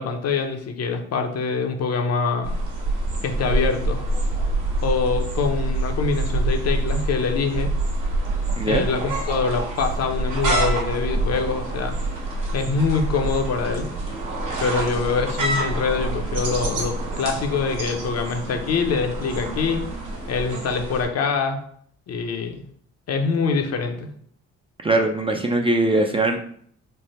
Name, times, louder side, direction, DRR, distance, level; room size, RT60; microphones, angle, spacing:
voice 1, 0.0-2.6 3.2-4.0 4.8-7.7 8.7-12.0 12.5-13.9 14.6-19.8 20.3-21.6 22.1-22.6 23.1-24.1, left 5 dB, 55° left, 5 dB, 0.7 m, -24 dB
sound 1, 2.4-21.0, right 2 dB, 85° right, 1.2 m, -26 dB
voice 2, 24.8-26.4, right 2 dB, 20° right, 3 dB, 0.3 m, -21 dB
3.3 x 2.1 x 4.1 m, 0.62 s
cardioid pair, 90°, 30 cm